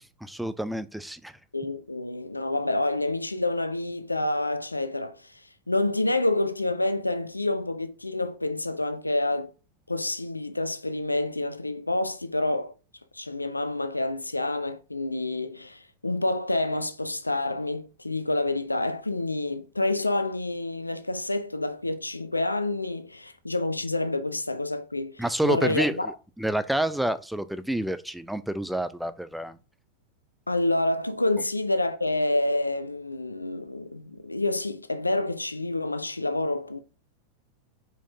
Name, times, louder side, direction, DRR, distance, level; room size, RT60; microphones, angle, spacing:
voice 1, 0.0-1.3 25.2-29.6, right 1 dB, ahead, 0.3 m, -29 dB
voice 2, 1.5-5.4 5.7-9.5 9.9-12.7 13.1-26.1 30.5-36.8, left 2 dB, 85° left, 0.4 m, -28 dB
4.6 x 4.4 x 2.7 m
figure-of-eight pair, 90°, 0 cm